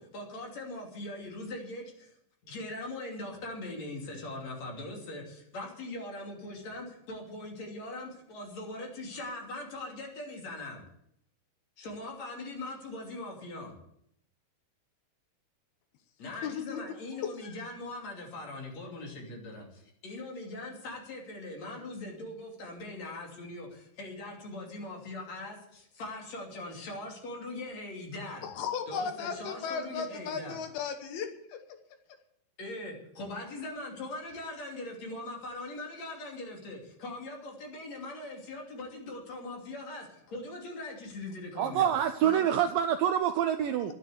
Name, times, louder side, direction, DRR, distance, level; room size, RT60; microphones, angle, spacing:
voice 1, 0.0-2.1 2.4-10.8 11.8-13.7 16.2-28.5 28.9-30.6 32.6-41.9 42.2-42.5, left 2 dB, 45° left, 0 dB, 3.9 m, -41 dB
voice 2, 16.4-16.8 17.2-17.5 28.4-31.8, left 6 dB, 75° left, 7 dB, 3.0 m, -36 dB
voice 3, 41.6-43.9, right 10 dB, 80° right, 9 dB, 2.0 m, -26 dB
12.0 x 10.0 x 8.1 m, 0.73 s
omnidirectional pair, 4.6 m